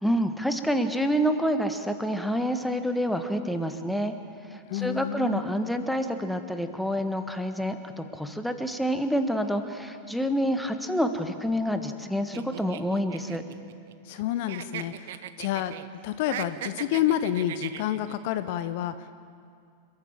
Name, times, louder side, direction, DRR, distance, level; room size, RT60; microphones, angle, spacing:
voice 1, 0.0-4.1 4.4-13.4, equal, ahead, 7 dB, 1.6 m, -28 dB
voice 2, 4.7-5.4 14.0-15.7 16.0-19.1, left 12 dB, 50° left, 12 dB, 0.8 m, -29 dB
sound 1, 12.3-14.2 14.5-15.9 16.2-18.2, right 11 dB, 55° right, 0.9 m, -38 dB
29.5 x 14.0 x 7.4 m, 2.3 s
figure-of-eight pair, 90°, 0 cm